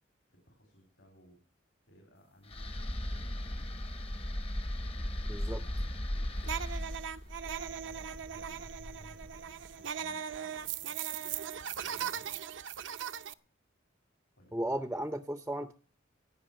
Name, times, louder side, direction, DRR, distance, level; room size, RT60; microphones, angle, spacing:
voice 1, 0.3-1.4 1.8-4.0 4.8-6.9 7.5-12.4 14.4-14.9, equal, 65° left, 2 dB, 3.7 m, -61 dB
sound 1, 2.5-9.6, left 1 dB, 30° left, 0.9 m, -37 dB
voice 2, 5.3-5.6 14.5-15.8, right 1 dB, 10° right, 11 dB, 0.5 m, -35 dB
sound 2, 6.4-13.3, right 8 dB, 70° right, 0.6 m, -39 dB
17.5 x 5.9 x 8.4 m, 0.41 s
head